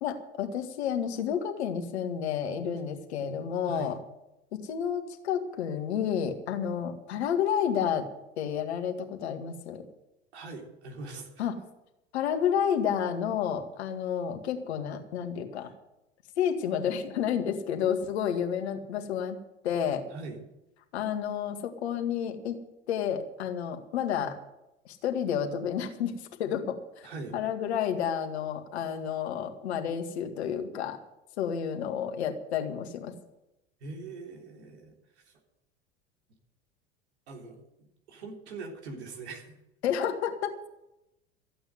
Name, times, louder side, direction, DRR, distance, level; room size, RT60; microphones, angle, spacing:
voice 1, 0.0-4.0 4.5-8.1 8.4-9.8 11.4-11.6 12.1-15.7 16.4-19.4 19.6-20.0 20.9-22.6 22.9-24.4 24.9-26.1 26.4-27.1 27.3-31.0 31.4-33.1 39.8-40.7, left 8 dB, 75° left, 6 dB, 2.0 m, -30 dB
voice 2, 10.3-11.4 15.6-15.7 20.1-20.4 27.0-27.4 33.8-35.4 37.3-37.6 38.1-39.5, right 3 dB, 75° right, 1 dB, 3.6 m, -42 dB
14.5 x 8.9 x 7.9 m, 0.90 s
hypercardioid pair, 80°, 33 cm